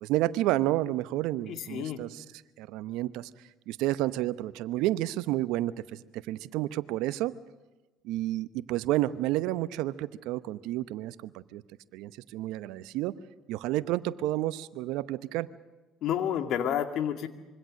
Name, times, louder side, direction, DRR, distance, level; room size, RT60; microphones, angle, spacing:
voice 1, 0.0-2.2 2.6-3.3 3.7-5.8 6.1-7.3 8.0-11.6 11.9-13.2 13.5-15.5, right 15 dB, 70° right, 15 dB, 0.9 m, -30 dB
voice 2, 1.5-2.0 16.0-17.3, left 9 dB, 60° left, 7 dB, 2.1 m, -30 dB
25.5 x 23.5 x 6.5 m, 1.2 s
hypercardioid pair, 65°, 0 cm